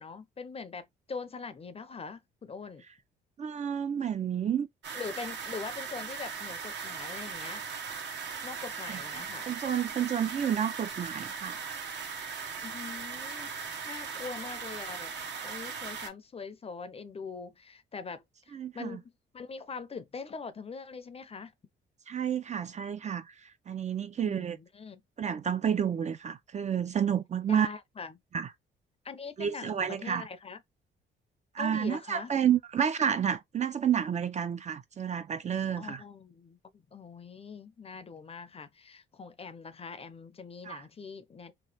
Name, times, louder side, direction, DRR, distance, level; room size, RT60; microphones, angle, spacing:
voice 1, 0.0-2.8 4.9-7.6 8.4-9.5 12.6-15.1 15.4-21.5 24.2-25.0 27.5-28.2 29.0-30.6 31.6-32.3 35.8-41.5, left 5 dB, 30° left, 0.5 m, -43 dB
voice 2, 3.4-4.7 8.9-9.0 9.5-11.6 18.5-19.0 22.1-24.6 25.2-27.7 28.3-28.5 29.4-30.3 31.5-36.0 40.6-40.8, right 8 dB, 35° right, 0.4 m, -30 dB
sound 1, 4.8-16.1, right 5 dB, 60° right, 0.8 m, -39 dB
3.0 x 2.2 x 3.2 m
cardioid pair, 90°, 20 cm